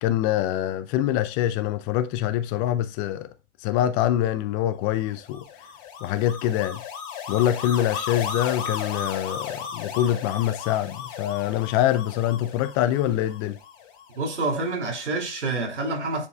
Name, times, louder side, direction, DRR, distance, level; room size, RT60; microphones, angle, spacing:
voice 1, 0.0-3.3 3.6-5.4 6.0-6.8 7.3-13.6, left 12 dB, 25° left, 0.4 m, -25 dB
sound 1, 5.1-14.4, left 7 dB, 45° left, 2.6 m, -35 dB
voice 2, 14.1-16.3, right 3 dB, 80° right, 3.0 m, -27 dB
9.6 x 4.6 x 2.3 m
hypercardioid pair, 110°, 34 cm